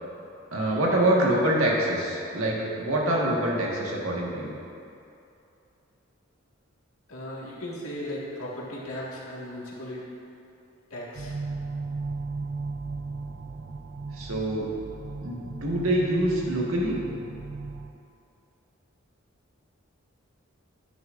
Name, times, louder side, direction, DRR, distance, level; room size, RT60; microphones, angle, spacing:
voice 1, 0.5-4.6 14.1-14.7 15.2-16.9, right 1 dB, 80° right, -3 dB, 1.6 m, -25 dB
voice 2, 7.1-10.0 10.9-11.3, left 1 dB, 85° left, -5 dB, 1.9 m, -36 dB
sound 1, 11.1-17.9, right 3 dB, 55° right, 0.5 m, -36 dB
10.5 x 9.3 x 2.6 m, 2.7 s
head